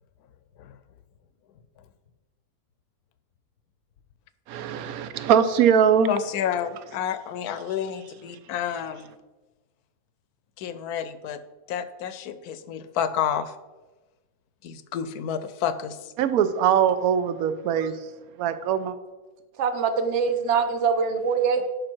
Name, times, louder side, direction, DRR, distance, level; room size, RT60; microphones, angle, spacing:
voice 1, 4.5-6.1 16.2-17.9 18.4-18.9, right 8 dB, 75° right, 12 dB, 1.1 m, -21 dB
voice 2, 6.1-9.1 10.6-11.4 11.7-13.6 14.6-16.1, left 9 dB, 80° left, 13 dB, 1.1 m, -30 dB
voice 3, 19.6-21.7, right 6 dB, 55° right, 9 dB, 1.0 m, -23 dB
11.0 x 5.2 x 4.5 m, 1.2 s
omnidirectional pair, 1.6 m